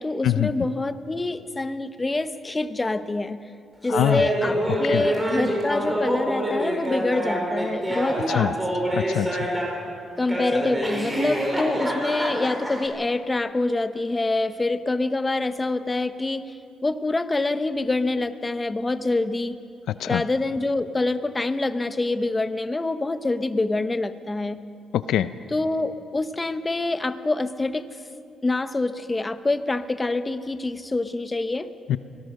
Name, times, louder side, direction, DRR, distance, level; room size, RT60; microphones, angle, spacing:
voice 1, 0.0-3.4 3.8-8.6 10.2-16.5 16.8-19.6 20.1-24.6 25.5-27.9 28.4-31.7, left 2 dB, 20° left, 11 dB, 0.9 m, -26 dB
voice 2, 3.9-4.2 4.9-5.0 8.3-8.5 8.9-9.5 20.0-20.2 24.9-25.3 31.9-32.0, left 11 dB, 80° left, 13 dB, 0.5 m, -23 dB
Laughter, 3.9-9.8 10.3-12.9, right 1 dB, 15° right, 5.0 m, -26 dB
24.0 x 17.5 x 6.5 m, 2.5 s
cardioid pair, 90°, 0 cm